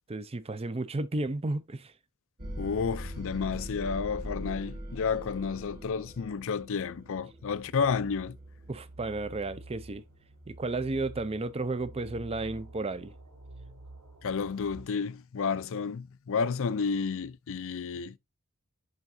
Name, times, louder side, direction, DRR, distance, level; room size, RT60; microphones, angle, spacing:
voice 1, 0.1-1.9 8.7-10.0 10.5-13.1, right 2 dB, 25° right, 0.5 m, -33 dB
sound 1, 2.4-9.4, equal, 45° right, 1.4 m, -41 dB
voice 2, 2.6-8.4 14.2-18.2, left 5 dB, 65° left, 0.5 m, -31 dB
sound 2, 6.1-14.9, right 2 dB, 70° right, 4.3 m, -49 dB
10.5 x 3.6 x 2.7 m
head